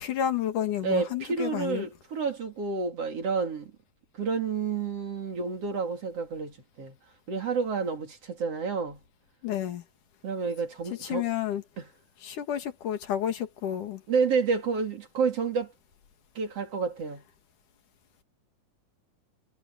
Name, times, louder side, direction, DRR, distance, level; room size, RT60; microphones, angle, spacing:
voice 1, 0.0-1.9 9.4-9.8 11.0-11.6 12.2-14.0, left 10 dB, 80° left, 3.6 m, -30 dB
voice 2, 0.8-3.7 4.1-7.0 7.3-9.0 10.2-11.3 11.8-11.9 14.1-15.7 16.4-17.2, right 5 dB, 50° right, 3.6 m, -29 dB
omnidirectional pair, 3.6 m